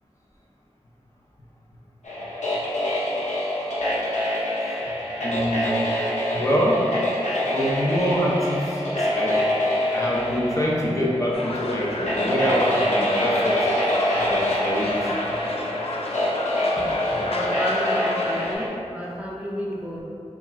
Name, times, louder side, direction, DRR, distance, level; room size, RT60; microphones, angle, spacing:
sound 1, 2.0-18.7, left 1 dB, 90° left, 0.7 m, -25 dB
voice 1, 5.2-5.8 6.3-6.8 7.5-9.4 9.9-13.6 14.3-15.0, equal, 25° left, -5 dB, 0.7 m, -25 dB
sound 2, 11.3-18.6, left 2 dB, 60° left, 0.4 m, -32 dB
voice 2, 17.2-20.0, equal, 10° right, -6 dB, 0.4 m, -31 dB
3.5 x 2.4 x 4.1 m, 2.7 s
wide cardioid pair, 70°, 12 cm